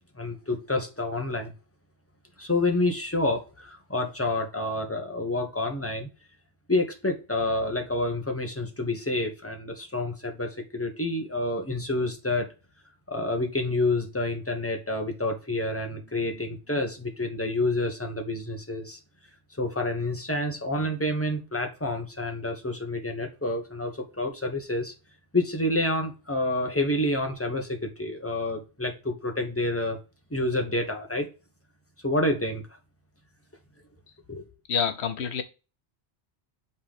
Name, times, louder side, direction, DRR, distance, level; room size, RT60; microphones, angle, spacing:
voice 1, 0.1-1.5 2.4-6.1 6.7-12.5 13.1-19.0 19.6-24.9 25.3-30.0 30.3-31.3 32.0-32.6 34.3-34.4, left 2 dB, 15° left, 1.0 m, -28 dB
voice 2, 34.7-35.4, left 7 dB, 75° left, 1.1 m, -27 dB
5.4 x 4.0 x 5.0 m
omnidirectional pair, 1.1 m